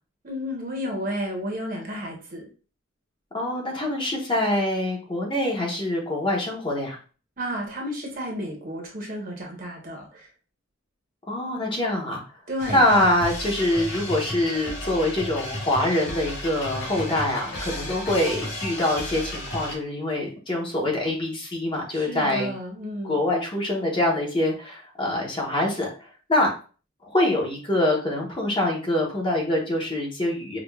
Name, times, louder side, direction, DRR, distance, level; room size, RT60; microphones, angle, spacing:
voice 1, 0.2-2.4 7.4-10.3 12.5-12.8 21.9-23.2, equal, 45° right, 1 dB, 1.0 m, -32 dB
voice 2, 3.3-7.0 11.3-12.2 12.7-22.5 23.0-25.9 26.3-26.5 27.1-30.6, left 1 dB, 25° left, -2 dB, 0.9 m, -24 dB
sound 1, 12.6-19.8, left 1 dB, 60° left, 1.5 m, -33 dB
4.9 x 2.4 x 2.3 m, 0.37 s
head